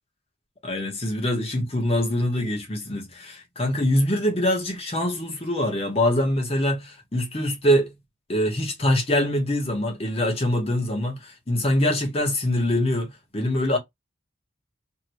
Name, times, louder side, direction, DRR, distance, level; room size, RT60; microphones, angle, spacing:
voice 1, 0.6-7.9 8.3-13.8, left 1 dB, 30° left, 1.0 m, -24 dB
2.8 x 2.8 x 2.9 m
head